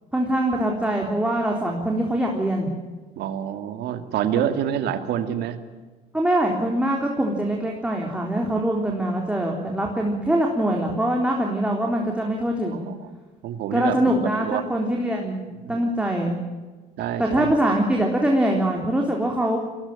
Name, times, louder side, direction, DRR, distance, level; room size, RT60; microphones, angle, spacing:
voice 1, 0.1-2.7 6.1-12.9 13.7-15.4 15.7-16.4 17.2-19.6, right 1 dB, 5° right, 0 dB, 3.8 m, -23 dB
voice 2, 3.2-5.6 12.9-13.1 13.4-14.0 14.4-14.6 15.6-16.0 17.0-17.6, right 10 dB, 80° right, 8 dB, 2.5 m, -27 dB
22.0 x 19.0 x 9.1 m, 1.3 s
cardioid pair, 110°, 17 cm